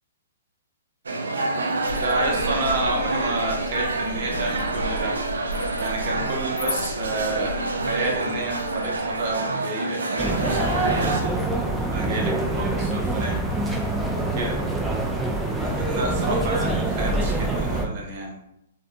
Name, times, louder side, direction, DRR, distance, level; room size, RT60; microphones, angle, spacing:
sound 1, 1.1-11.2, right 2 dB, 80° right, 0.4 m, -27 dB
sound 2, 1.9-9.4, left 1 dB, 75° left, 0.4 m, -35 dB
voice 1, 2.0-5.2 5.8-11.3 11.6-13.4 14.2-14.6 15.6-18.4, right 2 dB, 50° right, -2 dB, 0.8 m, -30 dB
sound 3, 10.2-17.9, right 2 dB, 5° right, 0.4 m, -25 dB
2.5 x 2.3 x 2.5 m, 0.84 s
hypercardioid pair, 120°, 0 cm